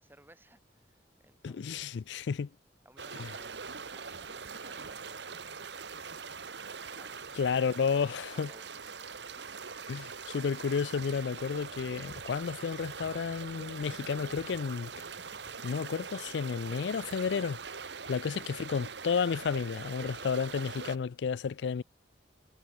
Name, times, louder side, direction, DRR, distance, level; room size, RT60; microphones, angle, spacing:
voice 1, 0.0-2.0 2.8-5.3 6.9-8.7, right 1 dB, 10° right, 3.7 m, -59 dB
voice 2, 1.4-2.5 3.1-3.3 7.4-8.5 9.9-14.9 15.6-17.6 18.1-21.8, left 6 dB, 80° left, 0.4 m, -32 dB
sound 1, 3.0-21.0, right 5 dB, 75° right, 1.7 m, -43 dB
head